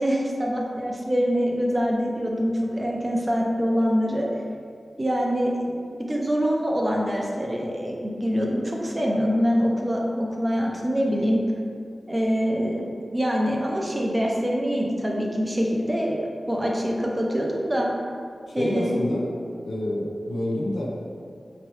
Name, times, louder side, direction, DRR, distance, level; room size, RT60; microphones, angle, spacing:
voice 1, 0.0-4.3 5.0-5.7 6.1-11.4 12.1-17.9 18.5-19.0, equal, 20° right, -1 dB, 0.5 m, -24 dB
voice 2, 18.5-19.3 19.6-20.9, left 1 dB, 80° left, -4 dB, 0.7 m, -27 dB
4.3 x 2.9 x 3.1 m, 2.2 s
wide cardioid pair, 105°, 0 cm